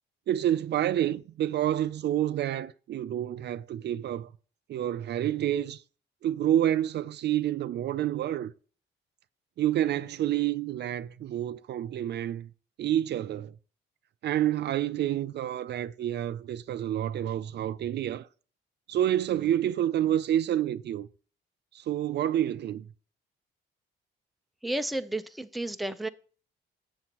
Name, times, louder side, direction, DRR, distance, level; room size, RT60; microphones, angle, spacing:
voice 1, 0.3-4.3 4.7-5.8 6.2-8.5 9.6-12.5 12.8-13.5 14.2-18.3 18.9-21.1 21.7-22.8, right 11 dB, 60° right, 0.4 m, -28 dB
voice 2, 24.6-26.1, right 1 dB, ahead, 0.5 m, -32 dB
7.5 x 7.0 x 2.9 m
cardioid pair, 90°, 20 cm